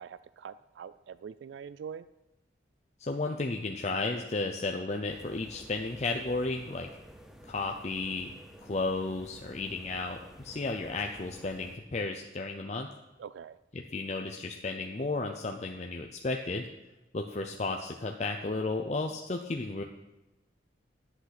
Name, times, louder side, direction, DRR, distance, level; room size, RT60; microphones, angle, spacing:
voice 1, 0.0-2.1 13.2-13.6, right 7 dB, 80° right, 15 dB, 0.3 m, -44 dB
voice 2, 3.0-6.9 7.5-8.3 8.6-12.9 13.9-16.7 17.1-19.8, left 3 dB, 35° left, 3 dB, 0.6 m, -33 dB
sound 1, 5.1-11.8, right 1 dB, 5° right, 0.7 m, -52 dB
11.0 x 8.0 x 5.9 m, 1.0 s
head